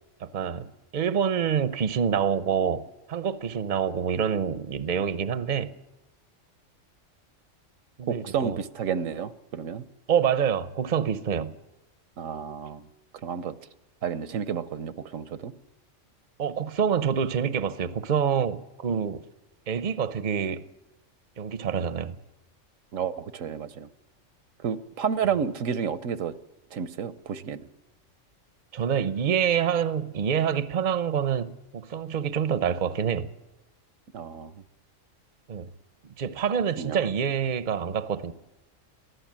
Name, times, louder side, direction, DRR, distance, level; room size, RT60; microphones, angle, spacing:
voice 1, 0.2-5.7 8.0-8.6 10.1-11.6 16.4-19.2 19.7-20.7 21.4-22.2 28.7-33.3 35.5-35.7 36.2-38.3, right 7 dB, 40° right, 0.8 m, -26 dB
voice 2, 8.1-9.8 12.2-12.9 13.2-13.6 14.0-15.5 22.9-23.9 24.6-26.3 26.7-27.7 34.1-34.5 36.8-37.0, right 7 dB, 80° right, 1.2 m, -31 dB
23.0 x 15.5 x 7.5 m
omnidirectional pair, 1.3 m